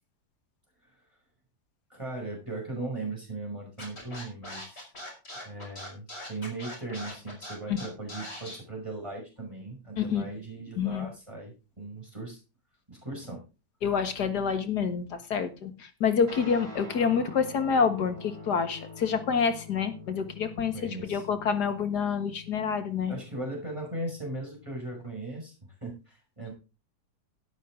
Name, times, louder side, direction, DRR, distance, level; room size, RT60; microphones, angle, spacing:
voice 1, 1.9-4.9 5.4-12.4 12.9-13.4 20.7-21.2 23.1-26.5, right 2 dB, 20° right, 0 dB, 5.9 m, -38 dB
Scratching (performance technique), 3.8-8.6, left 1 dB, 40° left, 5.6 m, -41 dB
voice 2, 10.8-11.1 13.8-23.1, left 6 dB, 80° left, 9 dB, 2.1 m, -27 dB
Guitar, 16.3-25.1, left 3 dB, 40° right, 3.4 m, -46 dB
13.0 x 11.5 x 3.8 m, 0.30 s
omnidirectional pair, 1.7 m